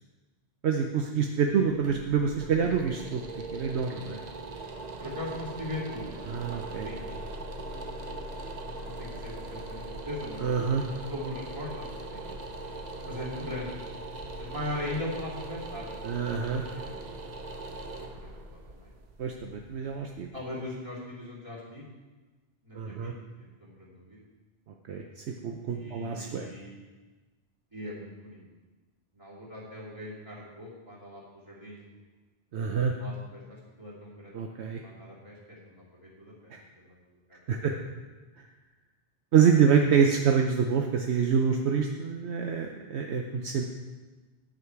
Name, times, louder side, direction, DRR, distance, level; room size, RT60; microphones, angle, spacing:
voice 1, 0.6-3.2 3.5-4.2 6.3-6.9 10.4-10.8 13.2-13.3 16.0-16.6 19.2-20.3 22.7-23.1 24.9-26.5 32.5-32.9 34.3-34.8 36.5-36.6 37.5-37.7 39.3-43.6, right 6 dB, 70° right, 3 dB, 0.9 m, -26 dB
sound 1, 1.5-20.4, right 2 dB, 40° right, 0.8 m, -40 dB
voice 2, 5.0-6.1 6.5-7.0 8.6-10.4 10.9-12.3 13.0-13.7 14.4-16.1 16.5-17.0 18.0-18.1 18.5-18.9 20.3-21.8 22.6-23.1 23.4-24.2 25.7-26.8 27.7-28.4 29.1-31.8 33.0-34.4 34.8-37.0 37.5-37.7, left 1 dB, 20° right, -7 dB, 2.9 m, -40 dB
9.9 x 7.4 x 4.6 m, 1.3 s
omnidirectional pair, 1.2 m